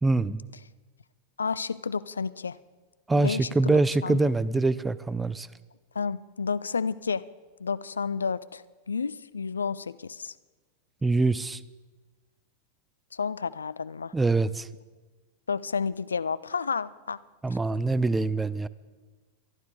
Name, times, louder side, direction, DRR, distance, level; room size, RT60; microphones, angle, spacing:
voice 1, 0.0-0.4 3.1-5.5 11.0-11.6 14.1-14.7 17.4-18.7, right 3 dB, 10° right, 19 dB, 0.5 m, -24 dB
voice 2, 1.4-2.6 3.2-4.2 6.0-7.2 7.6-10.3 13.1-14.1 15.5-17.2, left 5 dB, 75° left, 17 dB, 0.4 m, -31 dB
23.5 x 11.5 x 3.9 m, 1.3 s
figure-of-eight pair, 90°, 0 cm